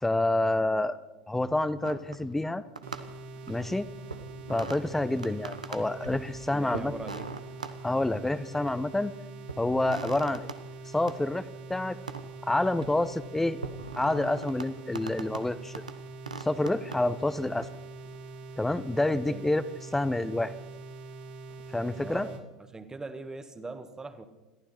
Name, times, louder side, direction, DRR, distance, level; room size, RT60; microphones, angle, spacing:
voice 1, 0.0-1.0 1.3-2.6 3.5-3.9 4.5-6.9 7.8-9.1 9.6-10.5 10.9-11.4 11.7-12.0 12.4-13.6 14.0-15.8 16.4-17.7 18.6-19.6 19.9-20.5 21.7-22.3, left 2 dB, 5° left, 15 dB, 0.9 m, -28 dB
sound 1, 1.7-2.5 2.7-3.7 4.1-4.8 5.2-6.3 6.7-7.7 8.4-9.0 9.5-10.6 11.1-11.2 12.1-12.2 12.6-13.0 13.6-14.7 14.9-15.5 15.7-15.9 16.3-17.0 17.6-17.7, right 4 dB, 85° right, 1.1 m, -40 dB
sound 2, 2.8-22.4, right 2 dB, 55° right, 2.7 m, -44 dB
voice 2, 6.5-7.3 19.3-19.4 22.0-24.3, right 3 dB, 15° right, 9 dB, 1.8 m, -40 dB
22.0 x 14.5 x 4.4 m, 1.1 s
figure-of-eight pair, 80°, 4 cm